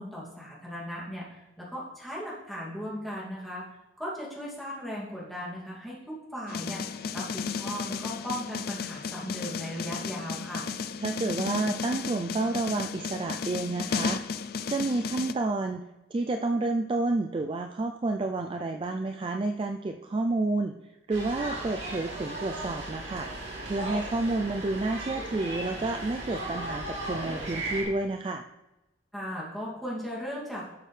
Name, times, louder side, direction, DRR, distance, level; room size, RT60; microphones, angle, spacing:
voice 1, 0.0-3.7 4.0-10.7 29.1-30.7, equal, ahead, -7 dB, 2.4 m, -37 dB
sound 1, 6.5-15.3, left 6 dB, 50° left, 0.4 m, -34 dB
voice 2, 11.0-14.2 14.7-20.7 21.1-23.3 23.6-28.4, right 2 dB, 30° right, 5 dB, 0.3 m, -30 dB
sound 2, 21.1-27.8, right 1 dB, 75° right, 3.1 m, -36 dB
11.5 x 6.5 x 3.3 m, 0.99 s
head